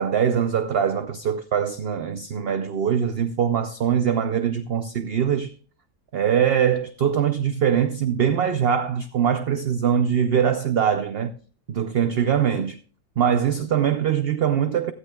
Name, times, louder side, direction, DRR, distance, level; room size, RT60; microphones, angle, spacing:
voice 1, 0.0-5.5 6.1-11.3 11.7-12.8 13.2-14.9, right 8 dB, 60° right, 0.6 m, -22 dB
16.0 x 12.5 x 2.3 m
omnidirectional pair, 1.6 m